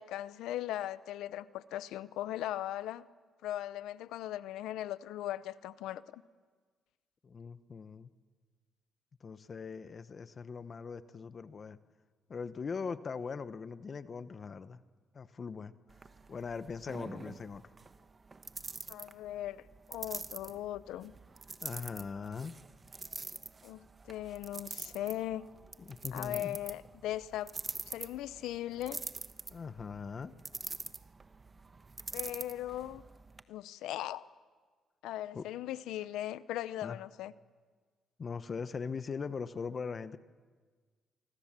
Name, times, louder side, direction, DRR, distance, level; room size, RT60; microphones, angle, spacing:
voice 1, 0.0-3.1 3.4-6.2 18.9-21.1 23.6-25.5 26.1-27.5 27.9-29.0 32.1-33.0 33.5-34.3 35.0-37.3, left 13 dB, 90° left, 16 dB, 0.7 m, -39 dB
voice 2, 7.2-8.1 9.2-11.8 12.3-14.8 15.1-15.7 16.3-17.6 21.6-22.5 25.8-26.6 29.5-30.3 35.3-35.4 36.8-37.0 38.2-40.2, left 5 dB, 40° left, 13 dB, 1.0 m, -40 dB
sound 1, 15.9-33.4, right 4 dB, 30° right, 1.2 m, -46 dB
26.0 x 25.0 x 7.5 m, 1.5 s
cardioid pair, 90°, 0 cm